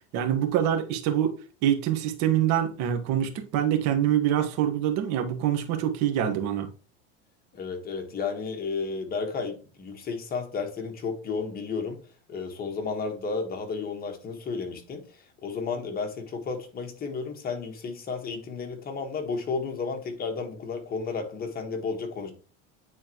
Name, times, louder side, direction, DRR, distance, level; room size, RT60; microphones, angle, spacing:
voice 1, 0.1-6.7, right 10 dB, 55° right, 1.6 m, -25 dB
voice 2, 7.5-12.0 12.3-15.0 15.4-22.3, left 4 dB, 30° left, 1.7 m, -32 dB
9.2 x 4.3 x 3.1 m
supercardioid pair, 125°, 33 cm